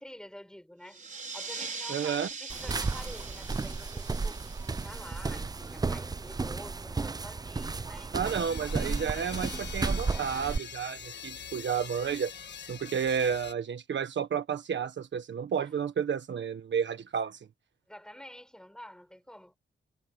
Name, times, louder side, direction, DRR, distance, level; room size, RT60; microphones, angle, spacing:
voice 1, 0.0-8.4 15.6-15.7 17.9-19.6, equal, 5° left, 6.6 m, -49 dB
sound 1, 0.9-6.1, right 4 dB, 40° right, 5.4 m, -42 dB
voice 2, 1.9-2.3 8.1-12.3 12.7-17.4, right 7 dB, 60° right, 1.4 m, -31 dB
sound 2, 2.5-10.6, right 4 dB, 20° right, 0.5 m, -33 dB
sound 3, 8.2-13.5, left 8 dB, 55° left, 1.4 m, -44 dB
wide cardioid pair, 155°, 21 cm